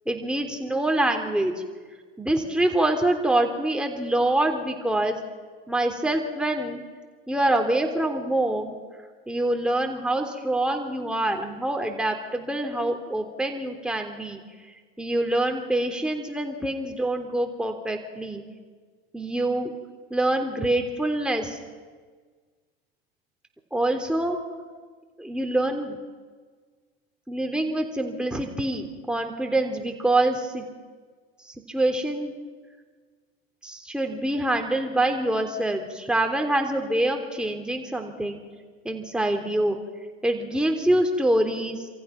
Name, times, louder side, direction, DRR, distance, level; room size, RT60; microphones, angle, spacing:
voice 1, 0.1-1.5 2.2-5.2 5.7-6.8 7.3-8.7 9.3-14.4 15.0-18.4 19.1-19.7 20.1-21.6 23.7-24.4 25.2-26.0 27.3-30.6 31.5-32.3 33.6-38.4 38.9-39.8 40.2-41.9, right 1 dB, 5° right, 3 dB, 3.5 m, -25 dB
28.0 x 27.5 x 6.0 m, 1.5 s
figure-of-eight pair, 80°, 31 cm